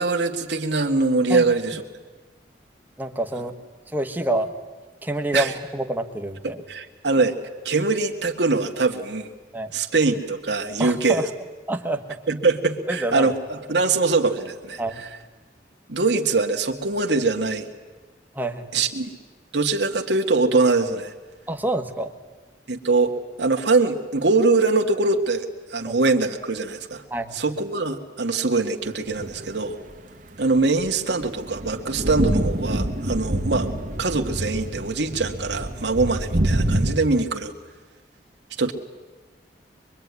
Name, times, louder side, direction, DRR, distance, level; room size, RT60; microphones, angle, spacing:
voice 1, 0.0-1.8 5.3-5.5 6.4-7.3 7.7-9.3 9.7-11.2 12.3-14.8 15.9-17.7 18.7-19.1 19.5-21.1 22.7-23.1 23.4-27.0 27.3-29.8 30.4-33.7 34.0-37.5 38.6-38.7, right 3 dB, 75° right, 3 dB, 1.8 m, -23 dB
voice 2, 3.0-3.5 3.9-4.5 5.0-6.6 9.5-9.7 10.8-11.3 11.7-12.2 12.9-13.3 14.8-15.0 18.3-18.7 21.5-22.1 25.9-26.0 27.1-27.3, right 1 dB, 10° right, 6 dB, 1.6 m, -27 dB
sound 1, 29.1-29.6 30.5-36.9, right 1 dB, 45° right, 1.6 m, -26 dB
23.5 x 23.5 x 9.6 m, 1.3 s
head